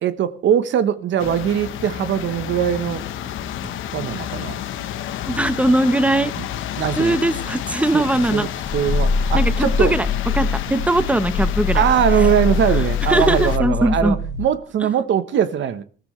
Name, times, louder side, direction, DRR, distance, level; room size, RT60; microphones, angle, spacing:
voice 1, 0.0-3.0 3.9-4.6 6.4-6.5 6.8-7.2 7.9-8.0 8.3-8.5 8.7-10.0 11.7-15.8, right 9 dB, 70° right, 1.1 m, -21 dB
sound 1, 1.2-13.6, left 10 dB, 85° left, 1.2 m, -30 dB
voice 2, 5.3-6.3 6.9-8.5 9.3-10.1 10.3-11.8 12.1-12.3 13.1-14.2, right 1 dB, 5° right, 1.0 m, -20 dB
Growling, 8.2-14.5, left 4 dB, 65° left, 2.8 m, -23 dB
20.0 x 15.5 x 3.2 m
cardioid pair, 90°, 20 cm